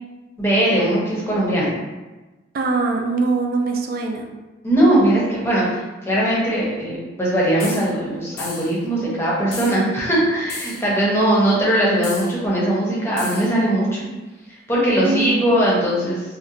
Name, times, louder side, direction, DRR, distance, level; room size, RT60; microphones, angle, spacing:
voice 1, 0.4-1.7 4.6-14.0 14.7-16.2, right 1 dB, 15° left, -6 dB, 0.6 m, -20 dB
voice 2, 2.5-4.3 15.0-15.5, right 3 dB, 50° right, 2 dB, 0.3 m, -22 dB
sound 1, 7.6-7.9 8.4-8.8 9.5-9.8 10.5-10.9 12.0-12.3 13.2-13.5, left 3 dB, 55° left, 0.5 m, -33 dB
2.8 x 2.1 x 2.5 m, 1.1 s
head